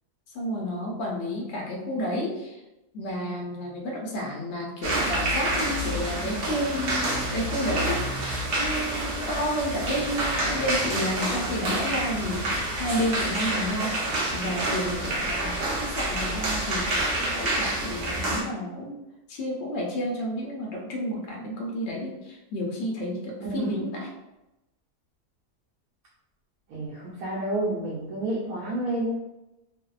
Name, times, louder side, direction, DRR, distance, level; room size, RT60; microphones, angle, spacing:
voice 1, 0.3-2.6 2.9-16.9 17.3-19.0 19.3-24.1, equal, 65° left, -2 dB, 0.6 m, -31 dB
sound 1, 4.8-18.4, right 1 dB, 60° right, 0.6 m, -28 dB
voice 2, 23.5-23.8 26.7-29.2, right 1 dB, 75° right, -6 dB, 1.0 m, -29 dB
2.6 x 2.0 x 2.3 m, 0.94 s
omnidirectional pair, 1.6 m